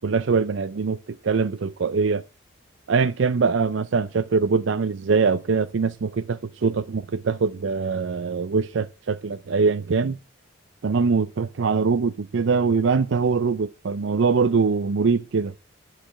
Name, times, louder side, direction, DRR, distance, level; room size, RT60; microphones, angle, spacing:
voice 1, 0.0-2.2 2.9-10.2 10.8-15.5, right 5 dB, 65° right, 0.5 m, -23 dB
11.5 x 5.0 x 8.3 m
head